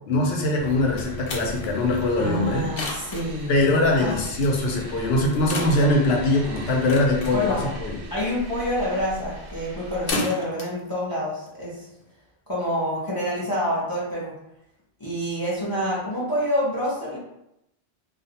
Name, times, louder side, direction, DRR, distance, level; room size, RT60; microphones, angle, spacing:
voice 1, 0.1-2.7 3.5-8.0, left 2 dB, 70° left, 0 dB, 0.8 m, -22 dB
sound 1, 0.6-10.1, equal, 65° right, 0.7 m, -39 dB
sound 2, 0.7-12.1, left 2 dB, 90° left, 0.9 m, -36 dB
voice 2, 2.2-3.5 3.9-4.2 7.3-7.7 8.1-11.8 12.5-14.4 15.0-17.2, equal, 25° left, -7 dB, 0.5 m, -27 dB
2.4 x 2.1 x 2.7 m, 0.84 s
omnidirectional pair, 1.1 m